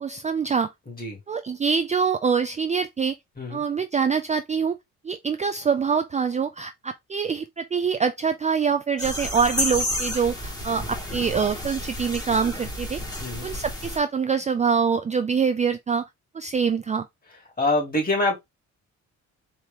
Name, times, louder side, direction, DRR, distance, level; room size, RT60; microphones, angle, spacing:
voice 1, 0.0-0.7 1.3-3.2 3.5-4.8 5.0-13.0 13.4-16.1 16.3-17.1, right 6 dB, 25° right, 0.4 m, -25 dB
voice 2, 0.9-1.2 3.4-3.6 10.8-10.9 13.2-13.5 17.6-18.4, left 2 dB, 30° left, 2.8 m, -25 dB
sound 1, 9.0-14.0, left 1 dB, 15° left, 1.8 m, -31 dB
4.4 x 3.0 x 3.5 m
cardioid pair, 90°, 30 cm